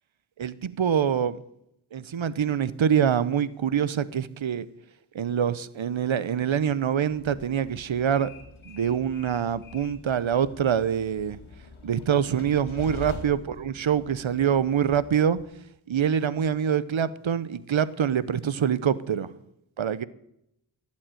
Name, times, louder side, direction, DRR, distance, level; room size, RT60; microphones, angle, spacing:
voice 1, 0.4-1.4 1.9-4.7 5.1-8.3 8.7-11.4 11.8-15.4 15.9-19.3 19.8-20.0, right 8 dB, 80° right, 0.9 m, -25 dB
Train, 7.1-15.4, left 4 dB, 90° left, 1.9 m, -45 dB
16.0 x 7.5 x 9.1 m
cardioid pair, 45°, 46 cm